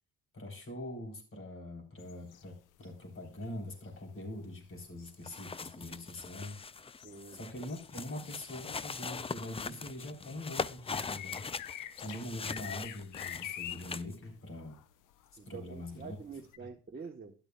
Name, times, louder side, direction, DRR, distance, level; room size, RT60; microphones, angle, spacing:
voice 1, 0.3-6.6 7.3-11.5 12.0-14.8 15.5-16.2, left 1 dB, 45° left, 3.8 m, -43 dB
sound 1, 2.0-3.0 3.3-9.6 9.8-16.6, left 13 dB, 90° left, 0.7 m, -47 dB
sound 2, 5.1-14.2, left 5 dB, 20° left, 0.4 m, -41 dB
voice 2, 7.0-7.4 15.4-17.4, right 5 dB, 30° right, 1.1 m, -47 dB
12.5 x 10.5 x 2.3 m
cardioid pair, 90°, 30 cm